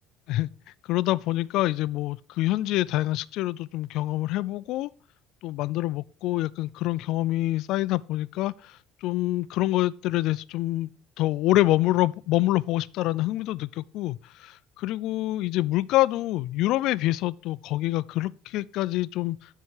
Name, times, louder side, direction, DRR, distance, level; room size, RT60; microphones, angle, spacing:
voice 1, 0.9-4.9 5.4-10.9 11.2-19.4, left 16 dB, 60° left, 0.3 m, -26 dB
11.0 x 4.6 x 4.8 m
cardioid pair, 155°, 0 cm